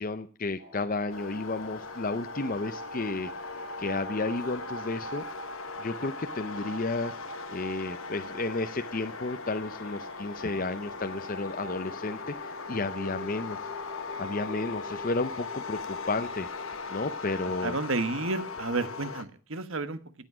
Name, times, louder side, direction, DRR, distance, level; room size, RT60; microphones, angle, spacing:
voice 1, 0.0-3.3 3.8-5.2 5.8-7.1 7.5-13.6 14.2-16.5 16.9-17.8, left 3 dB, 40° left, 9 dB, 0.6 m, -32 dB
sound 1, 0.6-19.2, right 2 dB, 30° right, 1.9 m, -45 dB
sound 2, 1.1-19.2, left 5 dB, 65° left, 1.1 m, -39 dB
voice 2, 17.6-20.0, right 3 dB, 65° right, 11 dB, 1.3 m, -31 dB
17.0 x 8.3 x 6.1 m, 0.41 s
head